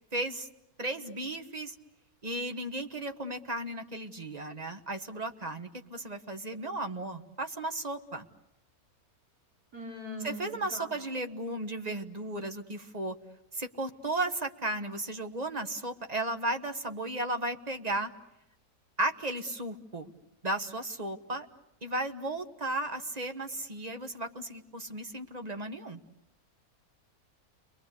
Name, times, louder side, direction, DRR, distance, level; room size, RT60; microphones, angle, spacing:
voice 1, 0.1-0.5 0.8-1.7 2.2-8.3 10.2-13.2 13.5-18.1 19.0-20.1 20.4-21.5 21.8-26.0, right 2 dB, 30° right, 8 dB, 1.3 m, -35 dB
voice 2, 9.7-10.9, left 1 dB, 85° right, -2 dB, 5.6 m, -40 dB
30.0 x 22.5 x 8.3 m, 0.85 s
omnidirectional pair, 1.6 m